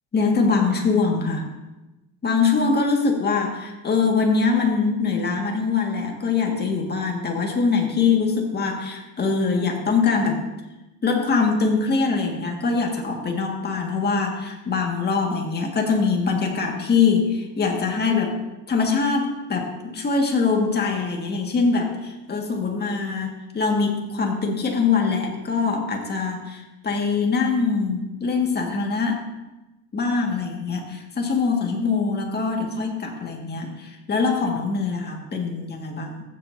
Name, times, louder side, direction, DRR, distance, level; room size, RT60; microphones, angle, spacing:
voice 1, 0.1-1.5 2.2-10.4 11.0-18.4 18.7-29.3 29.9-36.2, left 4 dB, 20° left, 1 dB, 1.8 m, -23 dB
14.5 x 7.6 x 2.7 m, 1.0 s
supercardioid pair, 120°, 45 cm